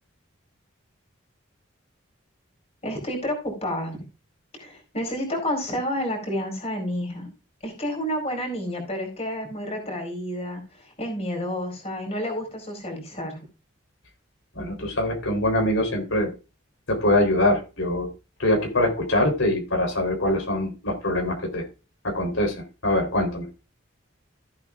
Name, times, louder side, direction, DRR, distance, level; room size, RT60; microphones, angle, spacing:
voice 1, 2.8-4.0 4.5-7.3 7.6-13.4, equal, 30° left, 3 dB, 4.5 m, -30 dB
voice 2, 14.5-16.3 16.9-18.1 18.4-21.6 22.0-22.5 22.8-23.5, left 1 dB, 80° left, 2 dB, 3.6 m, -23 dB
15.0 x 8.5 x 2.5 m, 0.31 s
head